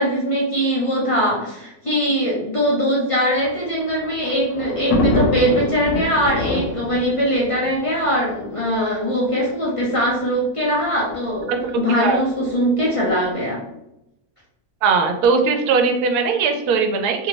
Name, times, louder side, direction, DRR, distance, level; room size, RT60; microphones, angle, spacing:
voice 1, 0.0-13.6, equal, 35° left, -5 dB, 0.5 m, -21 dB
Thunder, 3.5-8.8 9.6-9.7 9.9-10.0 11.1-11.4, left 2 dB, 80° left, 1.2 m, -25 dB
voice 2, 11.9-12.2 14.8-17.3, right 5 dB, 90° right, 5 dB, 1.1 m, -19 dB
2.9 x 2.7 x 2.9 m, 0.85 s
omnidirectional pair, 1.6 m